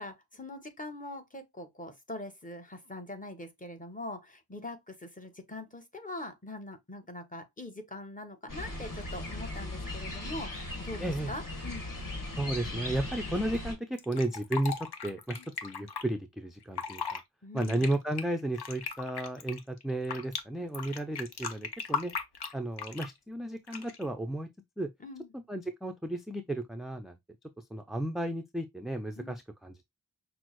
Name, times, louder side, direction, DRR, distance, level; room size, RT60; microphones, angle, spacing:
voice 1, 0.0-11.8 15.4-15.5 17.4-17.9 25.0-25.3 29.2-29.4, left 2 dB, 20° left, 0.9 m, -43 dB
sound 1, 8.5-13.7, left 2 dB, 55° left, 1.6 m, -38 dB
voice 2, 11.0-11.3 12.3-14.7 15.0-17.2 17.5-22.1 22.5-24.5 24.8-24.9 25.3-27.2 27.7-29.9, right 1 dB, ahead, 0.3 m, -33 dB
Fill (with liquid), 14.0-16.0 16.6-17.2 17.6-20.4 20.7-23.2 23.7-24.1, left 6 dB, 85° left, 0.7 m, -37 dB
6.0 x 2.0 x 3.0 m
wide cardioid pair, 75°, 38 cm